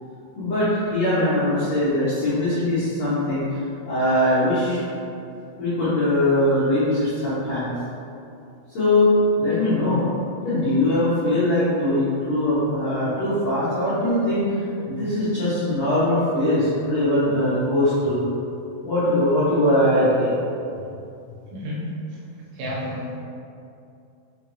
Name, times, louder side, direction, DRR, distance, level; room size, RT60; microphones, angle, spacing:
voice 1, 0.4-3.4 3.9-4.8 5.6-7.7 8.7-9.1 9.4-10.0 10.4-14.4 14.9-18.2 18.8-20.4, left 1 dB, 80° left, -13 dB, 1.4 m, -21 dB
voice 2, 21.5-21.9 22.5-23.2, left 1 dB, 85° right, -6 dB, 3.2 m, -31 dB
6.6 x 2.5 x 3.0 m, 2.6 s
omnidirectional pair, 4.8 m